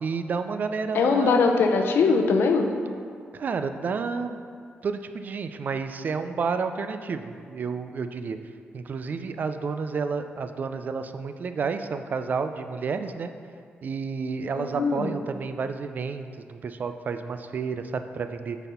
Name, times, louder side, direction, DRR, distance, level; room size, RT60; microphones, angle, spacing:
voice 1, 0.0-1.5 3.3-4.4 4.8-8.4 8.7-13.3 13.8-18.6, right 5 dB, 50° right, 8 dB, 0.4 m, -30 dB
voice 2, 0.9-2.7 14.5-15.1, left 4 dB, 75° left, 4 dB, 0.6 m, -21 dB
9.0 x 4.1 x 4.3 m, 2.3 s
cardioid pair, 110°, 4 cm